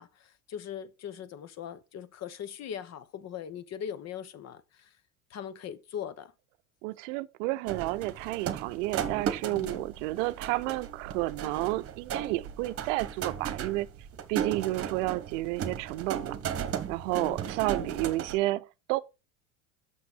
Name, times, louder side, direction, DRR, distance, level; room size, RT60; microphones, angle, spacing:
voice 1, 0.0-4.9 5.3-6.3 9.5-9.9 14.3-14.6 17.2-17.5 17.8-18.0, left 9 dB, 40° left, 1.0 m, -40 dB
voice 2, 6.8-13.9 14.3-19.0, right 19 dB, 65° right, 0.6 m, -31 dB
sound 1, 7.7-18.4, right 8 dB, 35° right, 1.3 m, -36 dB
6.4 x 5.9 x 5.2 m
hypercardioid pair, 90°, 40 cm